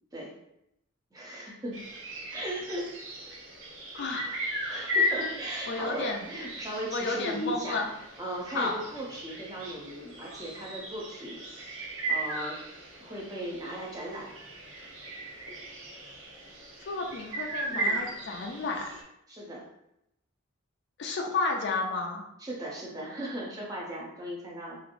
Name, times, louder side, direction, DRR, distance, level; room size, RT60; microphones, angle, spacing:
voice 1, 1.1-1.8 2.3-2.9 4.7-7.8 8.2-11.6 12.1-12.6 13.0-14.3 17.7-18.0 19.3-19.7 22.4-24.8, right 1 dB, 20° right, -4 dB, 0.6 m, -37 dB
sound 1, 1.7-19.0, equal, 65° right, 0.7 m, -36 dB
voice 2, 3.9-4.5 5.7-6.2 6.9-7.9 8.5-8.8 16.9-18.9 21.0-22.2, left 3 dB, 55° left, 1 dB, 0.4 m, -32 dB
3.0 x 2.5 x 2.5 m, 0.81 s
head